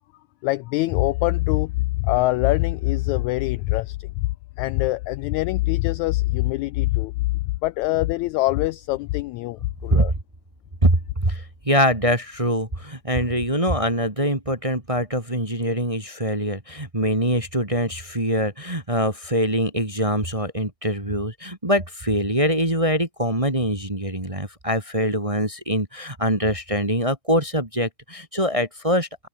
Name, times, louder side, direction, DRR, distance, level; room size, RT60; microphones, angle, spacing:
voice 1, 0.4-4.3 4.6-10.1, left 19 dB, 80° left, 1.7 m, -23 dB
voice 2, 10.8-29.3, equal, 10° right, 1.7 m, -23 dB
omnidirectional pair, 3.7 m